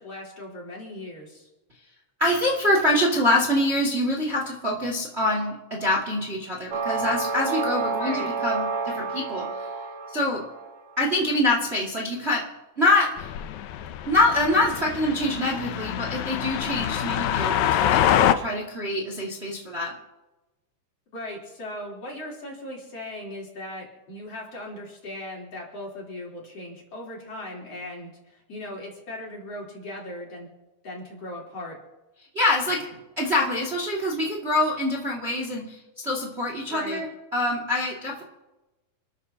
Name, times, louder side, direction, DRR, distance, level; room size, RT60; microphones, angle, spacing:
voice 1, 0.0-1.5 8.0-8.3 21.1-30.5 30.8-31.8 36.7-37.0, left 1 dB, 45° left, -3 dB, 4.7 m, -38 dB
voice 2, 2.2-9.5 10.1-10.4 11.0-12.4 12.8-13.3 14.0-19.9 32.3-32.9 33.2-35.8 36.0-37.1 37.3-38.2, left 1 dB, 20° right, -1 dB, 2.2 m, -25 dB
sound 1, 6.7-10.8, right 4 dB, 55° right, 3.6 m, -29 dB
sound 2, 13.2-18.4, left 10 dB, 75° left, 1.9 m, -25 dB
29.0 x 13.5 x 2.9 m, 1.0 s
omnidirectional pair, 3.9 m